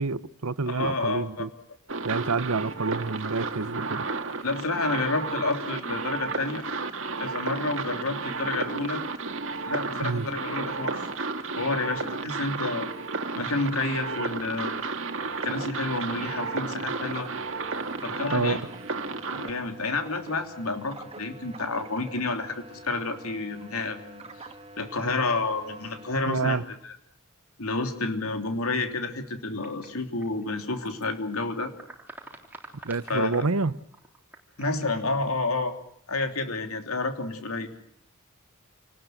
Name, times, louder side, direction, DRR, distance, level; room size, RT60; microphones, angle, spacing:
voice 1, 0.0-1.5 2.0-4.1 10.0-10.3 18.3-18.6 26.3-26.6 32.8-33.8, right 4 dB, 85° right, 1.0 m, -28 dB
voice 2, 0.7-1.5 4.4-6.6 7.2-9.0 9.6-11.1 11.6-12.9 13.3-14.7 15.4-17.3 18.0-18.7 19.3-24.2 24.8-26.6 26.8-26.9 27.6-31.7 33.1-33.4 34.6-35.7 36.1-37.7, left 3 dB, 80° left, 3.2 m, -29 dB
sound 1, 1.9-19.5, right 4 dB, 60° right, 2.1 m, -33 dB
sound 2, 15.2-26.1, right 2 dB, 25° right, 1.9 m, -45 dB
sound 3, 29.6-31.1 31.3-33.5 33.9-35.0, right 2 dB, 10° right, 3.6 m, -47 dB
28.0 x 19.5 x 7.9 m
head